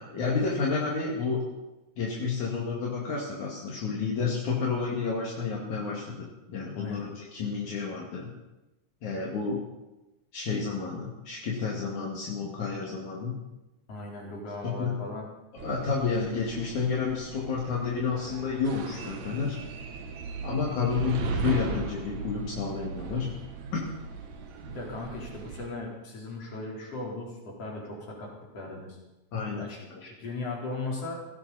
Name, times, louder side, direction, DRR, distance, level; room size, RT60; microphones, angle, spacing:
voice 1, 0.0-1.4 2.0-8.3 9.0-9.6 10.3-13.3 14.6-14.9 15.5-19.6 20.4-23.3 23.7-23.8 29.3-30.0, left 5 dB, 75° left, -3 dB, 3.7 m, -30 dB
voice 2, 6.7-7.1 13.9-15.2 24.7-29.0 29.6-31.2, left 2 dB, 50° left, -2 dB, 5.1 m, -38 dB
sound 1, 15.6-25.7, right 5 dB, 70° right, 2.7 m, -37 dB
19.5 x 16.5 x 4.2 m, 1.0 s
omnidirectional pair, 3.4 m